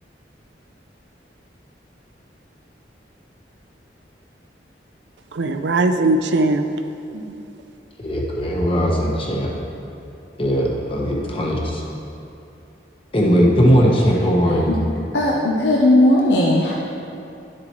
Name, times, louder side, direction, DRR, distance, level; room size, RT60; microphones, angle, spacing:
voice 1, 5.3-6.6, right 2 dB, 75° right, 0.5 m, -19 dB
voice 2, 8.0-9.5 10.4-11.8 13.1-14.7, equal, 30° left, 1.1 m, -18 dB
voice 3, 14.5-14.8 15.1-16.7, left 1 dB, 75° left, 0.8 m, -17 dB
11.0 x 7.5 x 3.1 m
head